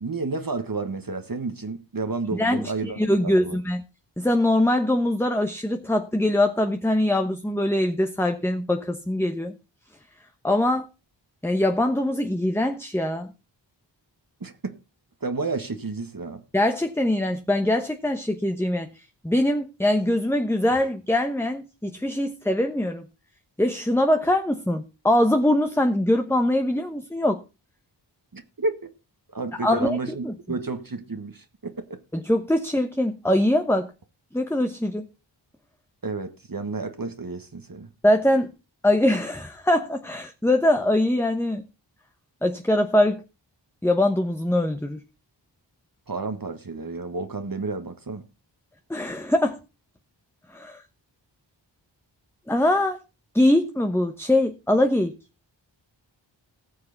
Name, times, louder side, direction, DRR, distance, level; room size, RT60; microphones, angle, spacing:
voice 1, 0.0-3.0 3.2-3.6 14.4-14.8 15.2-16.4 28.3-28.9 29.3-32.0 36.0-37.9 46.1-48.2, right 3 dB, 50° right, 1.5 m, -31 dB
voice 2, 2.3-3.8 4.2-9.5 10.4-10.9 11.4-13.3 16.5-18.9 19.2-23.0 23.6-27.4 29.6-30.0 30.2-30.3 32.1-33.9 34.3-35.1 38.0-38.5 38.8-41.6 42.4-43.2 43.8-45.0 48.9-49.6 50.5-50.8 52.5-53.0 53.3-55.1, left 1 dB, 5° left, 1.1 m, -22 dB
18.5 x 6.7 x 4.0 m
wide cardioid pair, 40°, 45 cm